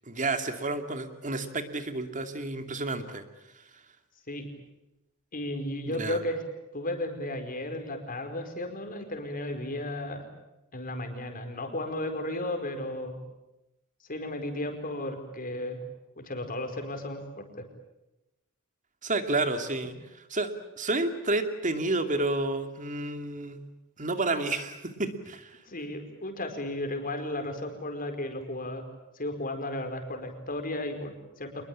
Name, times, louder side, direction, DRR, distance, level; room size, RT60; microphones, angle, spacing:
voice 1, 0.1-3.2 5.9-6.2 19.0-19.9 20.3-23.6 24.0-25.6, right 2 dB, 35° right, 7 dB, 2.5 m, -30 dB
voice 2, 5.3-6.4 6.7-10.2 10.7-13.2 14.1-15.8 16.2-17.6 25.7-28.8 29.1-31.7, left 1 dB, 40° left, 6 dB, 4.8 m, -34 dB
27.0 x 21.5 x 8.7 m, 0.93 s
head